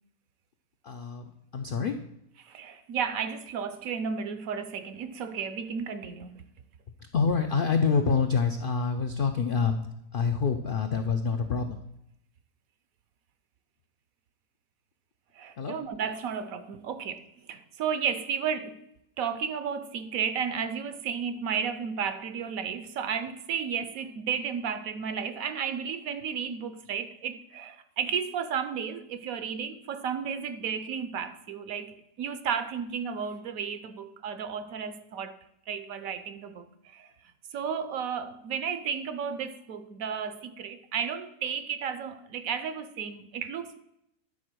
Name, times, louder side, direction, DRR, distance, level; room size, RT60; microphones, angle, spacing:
voice 1, 0.8-2.0 7.1-9.8 10.1-11.8 15.6-15.8, left 5 dB, 70° left, 0.5 m, -27 dB
voice 2, 2.4-6.5 15.3-18.8 19.2-35.4 35.7-37.1 37.5-43.8, right 7 dB, 70° right, 1.0 m, -33 dB
11.0 x 4.3 x 6.1 m
omnidirectional pair, 1.7 m